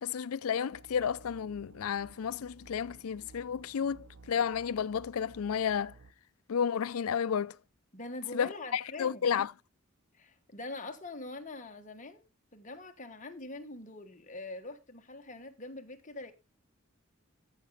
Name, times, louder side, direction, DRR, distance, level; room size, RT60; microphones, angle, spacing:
voice 1, 0.0-6.0 6.5-7.6 8.3-9.5, left 7 dB, 90° left, 0.4 m, -32 dB
sound 1, 0.7-6.1, right 3 dB, 65° right, 0.7 m, -56 dB
voice 2, 7.9-9.2 10.1-12.3 12.5-16.3, left 2 dB, 35° left, 1.4 m, -43 dB
14.0 x 5.9 x 4.0 m
head